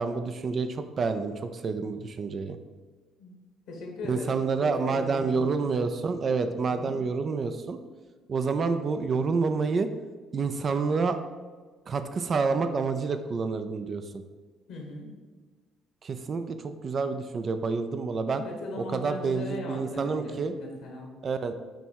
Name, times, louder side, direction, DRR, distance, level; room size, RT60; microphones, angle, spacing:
voice 1, 0.0-2.6 4.1-7.8 8.3-9.9 10.3-11.2 11.9-14.2 16.0-18.4 18.9-20.5 21.2-21.5, right 4 dB, 45° right, 9 dB, 0.5 m, -28 dB
voice 2, 3.7-5.9 6.6-7.0 14.7-15.1 18.3-21.1, left 2 dB, 75° left, 0 dB, 1.5 m, -39 dB
8.9 x 3.1 x 4.6 m, 1.4 s
hypercardioid pair, 55°, 0 cm